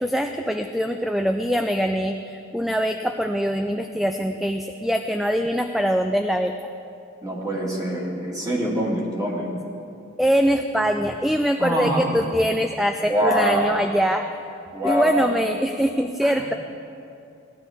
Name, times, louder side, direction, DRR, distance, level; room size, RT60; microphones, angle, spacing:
voice 1, 0.0-6.5 10.2-14.3 14.8-16.5, equal, ahead, 6 dB, 0.3 m, -23 dB
voice 2, 7.2-9.5 11.6-12.2 13.1-14.0 14.7-15.4 16.2-16.4, equal, 20° right, -4 dB, 2.2 m, -24 dB
17.5 x 11.5 x 3.6 m, 2.6 s
head